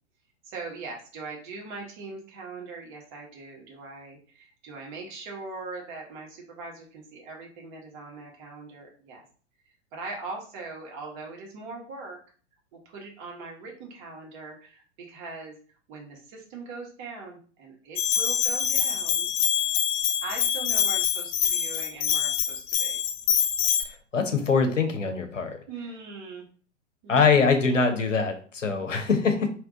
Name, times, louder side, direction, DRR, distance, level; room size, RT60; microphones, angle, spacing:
voice 1, 0.4-9.2 9.9-12.2 12.7-15.5 15.9-19.3 20.2-23.0 25.7-26.4 27.0-27.6 28.7-29.2, right 3 dB, 40° right, -1 dB, 1.4 m, -41 dB
Bell, 18.0-23.8, left 9 dB, 30° left, 0.5 m, -25 dB
voice 2, 24.1-25.6 27.1-29.5, left 5 dB, 80° left, 5 dB, 0.9 m, -23 dB
3.5 x 2.9 x 3.7 m, 0.42 s
figure-of-eight pair, 105°, 37 cm